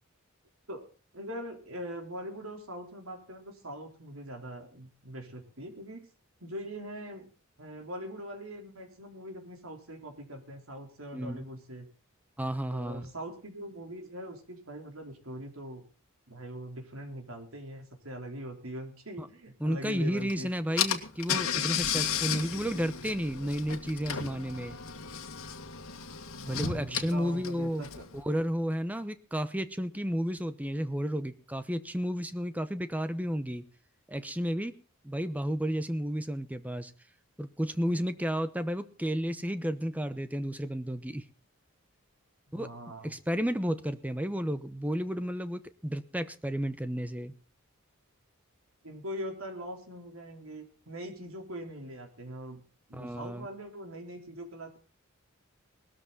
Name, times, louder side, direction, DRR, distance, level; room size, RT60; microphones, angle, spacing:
voice 1, 1.1-6.1 6.4-7.3 7.6-11.9 12.7-15.8 16.3-20.5 26.3-28.0 42.5-43.1 48.8-52.6 52.9-54.8, equal, 80° right, 4 dB, 3.8 m, -42 dB
voice 2, 11.1-11.4 12.4-13.1 19.2-19.3 19.6-24.8 26.5-27.8 28.1-33.6 34.1-34.7 35.0-36.9 37.4-41.2 42.5-42.7 43.0-47.3 52.9-53.5, equal, 5° right, 12 dB, 0.9 m, -32 dB
Car / Engine, 20.3-20.4 20.8-28.2, left 8 dB, 85° left, 2.0 m, -34 dB
19.0 x 13.5 x 4.1 m, 0.35 s
head